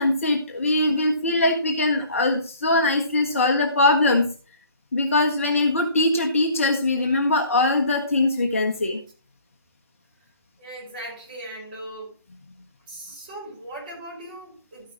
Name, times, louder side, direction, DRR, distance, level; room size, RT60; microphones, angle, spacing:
voice 1, 0.0-4.3 4.9-9.0, left 2 dB, 35° left, 3 dB, 1.2 m, -21 dB
voice 2, 10.6-12.1 12.9-14.9, right 1 dB, 20° right, -5 dB, 5.6 m, -38 dB
13.0 x 10.0 x 3.1 m, 0.37 s
figure-of-eight pair, 160°, 13 cm